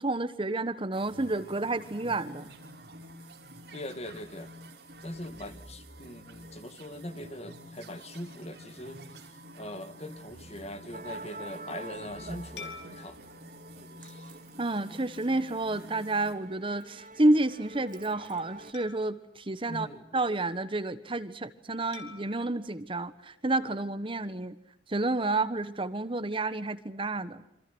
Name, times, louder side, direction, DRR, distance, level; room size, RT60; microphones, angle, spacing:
voice 1, 0.0-2.5 14.6-19.9 20.1-24.6 24.9-27.4, right 2 dB, 30° right, 12 dB, 1.2 m, -30 dB
sound 1, 0.9-16.3, right 1 dB, 65° right, 5.9 m, -49 dB
voice 2, 3.7-4.5 5.0-13.2 14.0-14.3 19.7-20.2, left 1 dB, 40° left, 9 dB, 2.1 m, -42 dB
Musical instrument, 10.9-18.7, right 2 dB, 50° right, 1.7 m, -47 dB
sound 2, 12.6-15.2 15.8-16.0 18.7-20.5 21.9-24.2, left 5 dB, 75° left, 4.1 m, -51 dB
28.0 x 26.0 x 6.2 m, 0.76 s
head